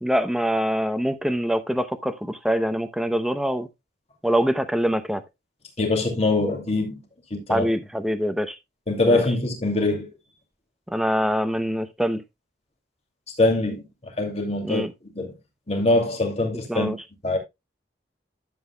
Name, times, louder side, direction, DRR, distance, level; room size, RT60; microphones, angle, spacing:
voice 1, 0.0-3.7 4.2-5.2 7.5-8.6 9.1-9.2 10.9-12.2 14.6-14.9 16.7-17.0, equal, ahead, 0.7 m, -24 dB
voice 2, 5.8-7.0 7.3-7.7 8.9-10.1 13.4-14.9 15.1-15.3 15.7-17.0 17.2-17.4, left 2 dB, 35° left, 2.5 m, -23 dB
12.0 x 7.9 x 2.2 m
head